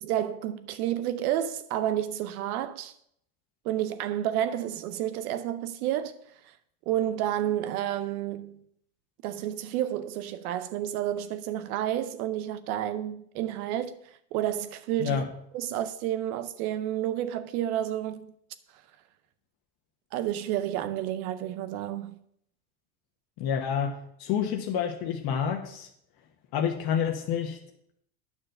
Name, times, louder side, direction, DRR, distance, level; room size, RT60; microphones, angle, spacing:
voice 1, 0.0-2.9 3.6-6.2 6.4-6.5 6.9-8.6 9.2-15.2 15.5-18.3 20.1-22.2, right 11 dB, 75° right, 0.7 m, -30 dB
voice 2, 23.4-25.9 26.5-27.6, left 8 dB, 55° left, 1.2 m, -28 dB
9.8 x 4.5 x 6.5 m
supercardioid pair, 100°, 45 cm